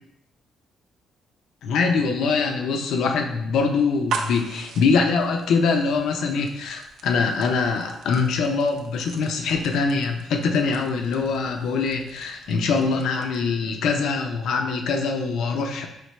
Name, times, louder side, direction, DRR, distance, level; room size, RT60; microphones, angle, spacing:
voice 1, 1.6-15.9, left 4 dB, 80° left, 3 dB, 0.5 m, -23 dB
sound 1, 3.9-13.6, right 4 dB, 75° right, 0.5 m, -39 dB
4.8 x 3.3 x 3.0 m, 0.85 s
cardioid pair, 115°, 0 cm